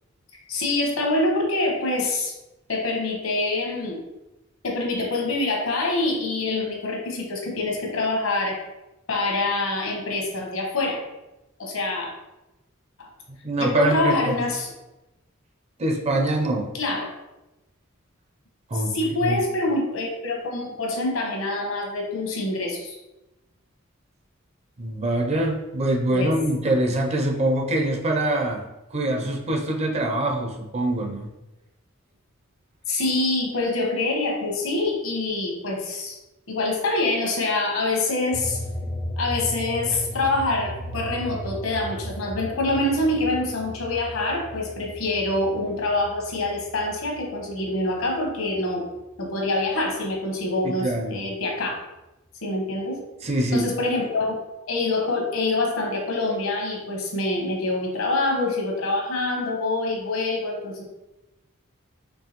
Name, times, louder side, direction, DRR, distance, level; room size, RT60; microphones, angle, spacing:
voice 1, 0.5-2.3 2.7-4.0 4.6-8.6 9.1-11.0 11.6-12.1 13.0-13.1 13.6-14.7 16.7-17.1 18.7-23.0 26.1-26.3 32.9-36.2 36.5-38.6 39.2-48.8 49.2-51.8 52.4-53.0 53.5-54.4 54.7-60.8, left 2 dB, 80° left, 1 dB, 1.0 m, -25 dB
voice 2, 13.4-14.3 15.8-16.7 18.7-19.4 24.8-31.3 50.6-51.2 53.2-53.7, right 1 dB, 30° right, 2 dB, 0.5 m, -24 dB
sound 1, 38.3-49.2 49.6-51.0, equal, 20° left, 0.4 m, -36 dB
4.4 x 3.0 x 2.9 m, 0.98 s
head